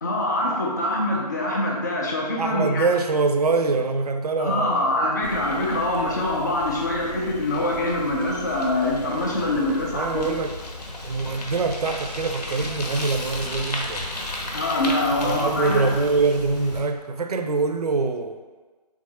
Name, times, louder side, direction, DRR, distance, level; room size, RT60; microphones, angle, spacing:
voice 1, 0.0-2.9 4.4-10.3 14.5-15.9, left 1 dB, 25° left, -1 dB, 0.4 m, -24 dB
voice 2, 2.4-5.1 9.9-10.5 11.0-14.1 15.2-18.4, right 4 dB, 65° right, 6 dB, 0.4 m, -24 dB
Bicycle, 5.2-16.8, left 2 dB, 75° left, 0.9 m, -35 dB
3.6 x 3.6 x 3.2 m, 1.3 s
figure-of-eight pair, 155°, 21 cm